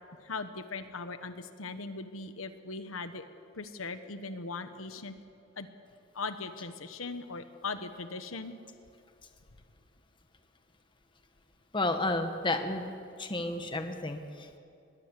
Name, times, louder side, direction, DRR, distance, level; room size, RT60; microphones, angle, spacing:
voice 1, 0.2-3.2 3.6-5.1 5.6-5.7 6.1-8.5, left 4 dB, 90° left, 9 dB, 1.2 m, -39 dB
voice 2, 11.7-12.9 13.2-14.6, left 2 dB, 25° left, 6 dB, 1.3 m, -31 dB
21.5 x 17.0 x 8.3 m, 2.6 s
head